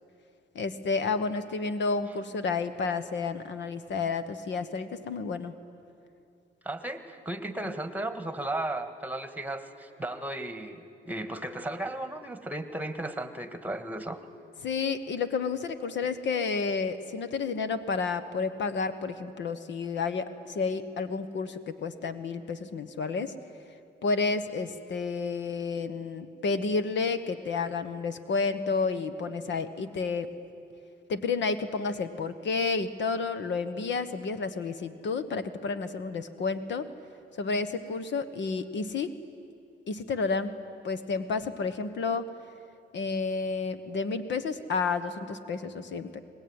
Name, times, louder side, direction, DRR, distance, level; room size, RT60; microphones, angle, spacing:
voice 1, 0.5-5.5 7.6-7.7 14.6-23.3 24.0-30.3 31.1-36.9 37.4-39.1 39.9-40.6 40.8-42.2 42.9-46.2, left 4 dB, 65° left, 11 dB, 1.3 m, -31 dB
voice 2, 6.6-14.2, right 1 dB, 10° right, 9 dB, 1.7 m, -35 dB
23.5 x 20.5 x 9.8 m, 2.6 s
cardioid pair, 90°, 20 cm